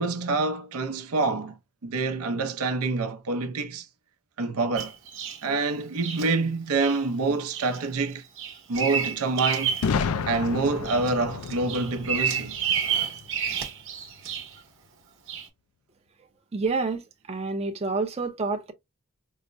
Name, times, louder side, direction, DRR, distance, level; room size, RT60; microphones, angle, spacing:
voice 1, 0.0-1.6 1.8-3.9 4.4-4.9 5.4-8.2 8.7-9.7 10.3-12.6, right 3 dB, 85° right, 0.6 m, -26 dB
Bird vocalization bird call bird song, 4.8-5.4 6.0-6.3 6.8-7.0 7.5-7.8 8.1-9.9 10.3-11.1 11.4-14.6 15.3-15.5, right 7 dB, 60° right, 0.9 m, -30 dB
Boom, 9.8-13.6, left 5 dB, 80° left, 0.4 m, -31 dB
voice 2, 16.5-18.7, right 3 dB, 30° right, 0.5 m, -28 dB
4.7 x 2.0 x 2.5 m
head